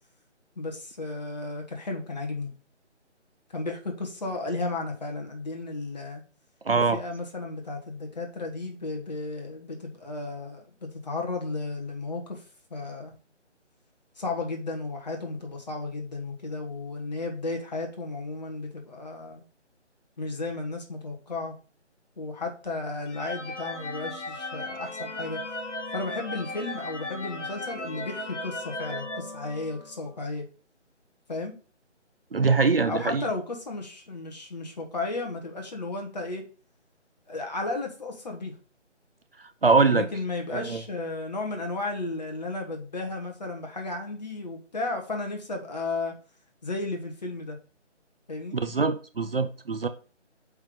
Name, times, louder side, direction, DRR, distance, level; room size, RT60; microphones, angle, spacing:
voice 1, 0.6-2.5 3.5-6.2 6.9-12.4 12.7-13.1 14.2-19.4 20.2-21.5 22.2-25.4 25.9-30.4 31.3-31.5 32.8-36.4 37.3-38.6 39.9-46.1 46.6-47.6 48.3-48.6, left 3 dB, 35° left, 1.5 m, -34 dB
voice 2, 6.6-7.0 32.3-33.2 39.6-40.1 40.5-40.8 48.5-49.9, right 4 dB, 55° right, 0.6 m, -23 dB
sound 1, 23.1-30.1, left 2 dB, 75° left, 1.3 m, -36 dB
7.9 x 3.7 x 3.8 m
figure-of-eight pair, 155°, 36 cm